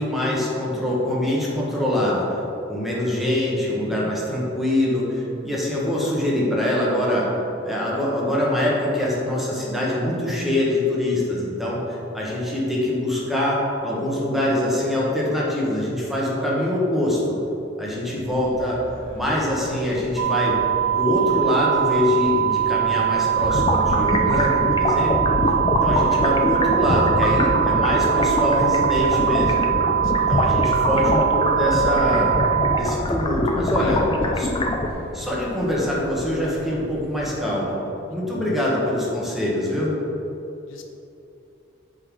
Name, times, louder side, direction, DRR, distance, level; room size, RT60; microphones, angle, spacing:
voice 1, 0.0-2.3 2.7-7.3 7.6-17.3 17.8-18.8 19.1-20.6 20.9-25.1 25.8-29.6 30.1-32.4 32.8-34.0 34.4-34.5 35.1-37.8 38.1-39.9, left 1 dB, ahead, -6 dB, 1.4 m, -24 dB
voice 2, 17.9-18.7 30.0-30.4 33.8-34.5 38.2-38.6 40.7-40.8, left 3 dB, 70° left, 4 dB, 0.6 m, -37 dB
sound 1, 18.2-37.3, equal, 75° right, 1.0 m, -40 dB
sound 2, 20.2-32.8, right 10 dB, 90° right, 0.4 m, -22 dB
sound 3, 23.4-34.9, left 2 dB, 25° left, 0.4 m, -24 dB
7.5 x 4.0 x 4.7 m, 2.9 s
head